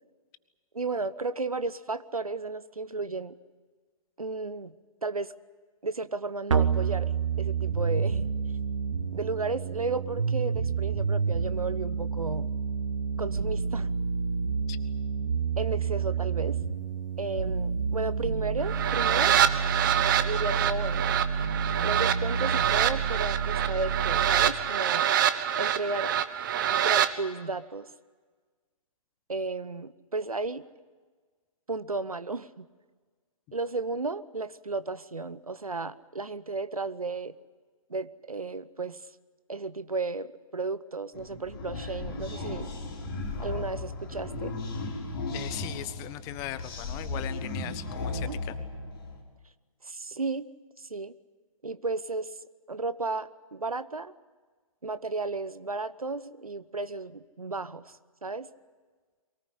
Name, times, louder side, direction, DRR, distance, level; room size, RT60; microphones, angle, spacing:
voice 1, 0.7-3.3 4.2-4.7 5.0-5.3 5.8-7.1 7.4-8.3 9.1-12.5 13.2-14.0 15.6-16.6 17.2-19.4 20.2-21.1 21.8-25.1 25.6-26.1 26.7-27.9 29.3-30.6 31.7-32.7 33.5-37.3 37.9-39.0 39.5-42.7 43.4-44.5 48.2-48.4 49.8-50.5 50.8-51.1 51.6-52.3 52.7-54.1 54.8-57.9 58.2-58.5, right 3 dB, 80° right, 15 dB, 1.0 m, -33 dB
sound 1, 6.5-24.5, right 6 dB, 60° right, 1.6 m, -29 dB
sound 2, 18.6-27.1, right 10 dB, 35° right, 1.1 m, -26 dB
sound 3, 41.1-49.2, left 2 dB, 35° left, 4.3 m, -36 dB
voice 2, 45.3-48.5, left 15 dB, 20° left, 15 dB, 0.7 m, -39 dB
23.5 x 18.0 x 9.9 m, 1.5 s
figure-of-eight pair, 130°, 18 cm